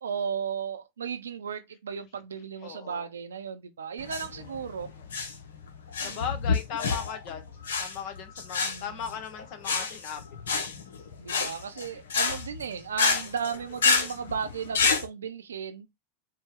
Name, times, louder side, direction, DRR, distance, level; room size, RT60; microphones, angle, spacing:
voice 1, 0.0-4.9 6.0-6.2 8.6-9.2 11.2-15.9, right 7 dB, 80° right, 0.6 m, -35 dB
voice 2, 2.6-3.1 6.0-7.4 7.8-10.2 10.5-10.6, left 7 dB, 50° left, 1.2 m, -37 dB
sound 1, 4.0-15.0, left 5 dB, 75° left, 0.8 m, -29 dB
4.3 x 2.3 x 3.6 m
hypercardioid pair, 90°, 0 cm